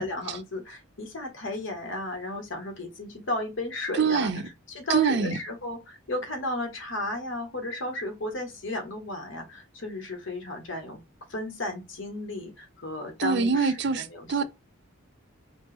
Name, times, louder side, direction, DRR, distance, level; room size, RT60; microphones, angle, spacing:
voice 1, 0.0-4.3 4.7-11.0 11.3-14.4, left 1 dB, 65° left, 1.1 m, -34 dB
voice 2, 4.0-4.4 4.9-5.3 13.2-14.4, right 5 dB, 55° right, 0.4 m, -24 dB
4.2 x 2.0 x 3.3 m
head